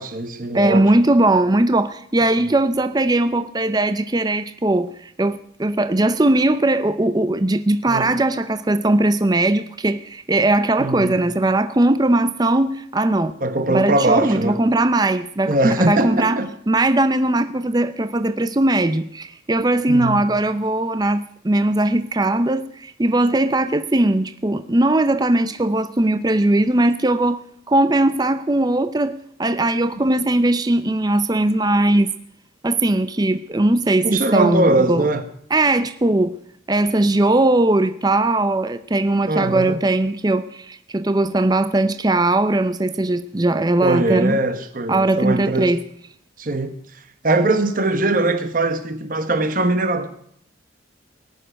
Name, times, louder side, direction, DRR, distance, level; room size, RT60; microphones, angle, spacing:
voice 1, 0.0-0.9 7.9-8.2 10.8-11.2 13.4-14.6 15.4-16.5 19.9-20.2 34.0-35.2 39.3-39.8 43.8-45.8 46.4-50.1, right 2 dB, 45° right, 1.0 m, -21 dB
voice 2, 0.5-13.3 13.7-16.4 16.7-27.4 27.7-32.1 32.6-35.0 35.5-36.4 36.7-44.4 44.9-45.8, right 2 dB, 20° right, 0.5 m, -19 dB
18.5 x 6.9 x 9.9 m
head